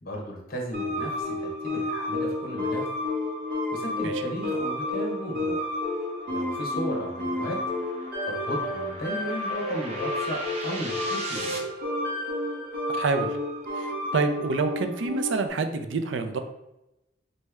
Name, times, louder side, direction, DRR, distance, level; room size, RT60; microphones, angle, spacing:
voice 1, 0.0-2.9 3.5-5.7 6.2-7.6 8.0-11.7, equal, 55° left, 0 dB, 1.1 m, -35 dB
sound 1, 0.7-15.5, left 1 dB, 55° right, 1.3 m, -31 dB
sound 2, 4.7-11.6, right 2 dB, 35° right, 0.8 m, -41 dB
voice 2, 12.9-13.4 13.7-16.4, right 4 dB, 75° right, 8 dB, 0.4 m, -27 dB
4.1 x 3.2 x 3.4 m, 0.91 s
head